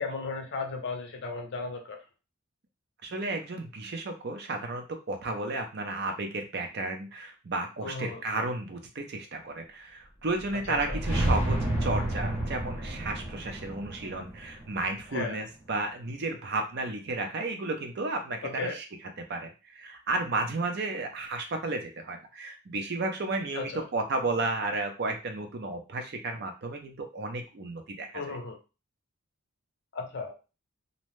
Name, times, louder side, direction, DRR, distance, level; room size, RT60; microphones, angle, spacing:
voice 1, 0.0-2.0 7.8-8.2 10.7-11.0 15.1-15.4 18.4-18.8 23.6-23.8 28.1-28.6 29.9-30.3, left 4 dB, 50° left, 3 dB, 0.6 m, -35 dB
voice 2, 3.0-28.4, right 2 dB, 50° right, 5 dB, 0.5 m, -33 dB
sound 1, 10.4-15.5, right 1 dB, 10° right, 0.6 m, -31 dB
2.6 x 2.1 x 3.1 m, 0.31 s
head